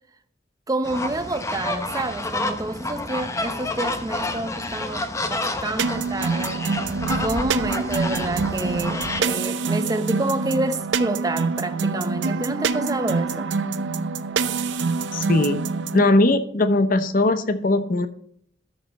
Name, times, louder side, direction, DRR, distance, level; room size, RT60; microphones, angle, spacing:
voice 1, 0.7-6.6 7.2-13.5, right 2 dB, 20° right, 0.7 m, -28 dB
sound 1, 0.8-9.2, left 2 dB, 15° left, 0.8 m, -29 dB
sound 2, 5.8-16.1, right 4 dB, 80° right, 0.6 m, -26 dB
voice 2, 15.1-15.6 15.9-18.1, left 2 dB, 50° left, 0.8 m, -19 dB
13.0 x 5.7 x 4.2 m
head